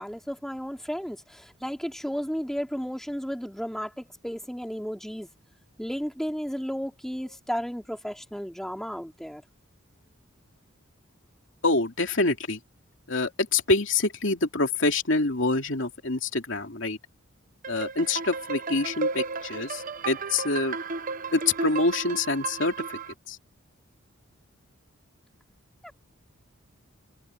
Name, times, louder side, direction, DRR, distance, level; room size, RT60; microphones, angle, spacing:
voice 1, 0.0-5.3 5.8-9.4 25.8-25.9, equal, ahead, 4.5 m, -33 dB
voice 2, 11.6-12.6 13.1-17.0 17.7-20.8 21.3-23.0 23.3-23.4, left 3 dB, 65° left, 2.9 m, -26 dB
sound 1, 17.6-23.1, right 4 dB, 40° right, 0.8 m, -33 dB
head